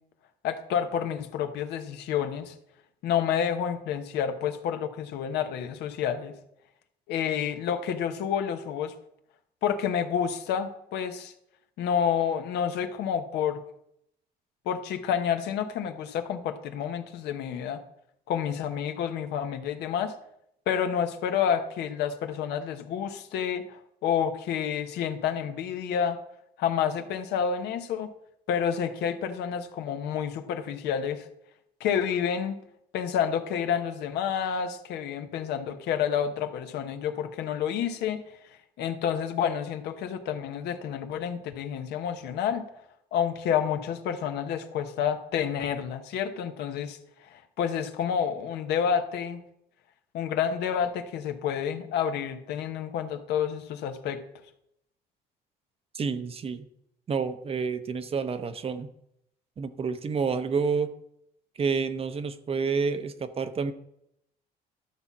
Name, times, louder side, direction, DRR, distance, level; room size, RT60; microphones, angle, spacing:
voice 1, 0.4-2.5 3.0-6.3 7.1-8.9 9.6-11.3 11.8-13.6 14.6-17.8 18.3-20.1 20.7-26.2 26.6-28.1 28.5-31.3 31.8-32.6 32.9-38.2 38.8-42.7 43.1-47.0 47.3-49.4 50.1-54.2, left 8 dB, 80° left, 7 dB, 1.0 m, -29 dB
voice 2, 55.9-56.7 57.1-58.9 59.6-60.9 61.6-63.7, right 5 dB, 35° right, 10 dB, 0.8 m, -29 dB
12.0 x 4.2 x 7.2 m, 0.77 s
cardioid pair, 110°, 17 cm